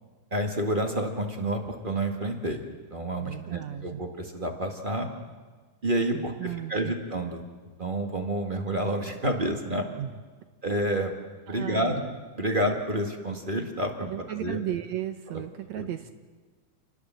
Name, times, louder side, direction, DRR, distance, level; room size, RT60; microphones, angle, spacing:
voice 1, 0.3-5.1 5.8-7.4 7.8-9.8 10.6-11.1 11.5-12.0 12.4-14.1 14.4-14.6 15.7-15.9, right 1 dB, 30° right, 3 dB, 0.9 m, -29 dB
voice 2, 3.2-4.0 6.1-7.0 10.0-10.2 11.5-12.1 14.1-16.1, right 12 dB, 70° right, 9 dB, 1.7 m, -35 dB
28.5 x 20.0 x 7.6 m, 1.4 s
omnidirectional pair, 4.0 m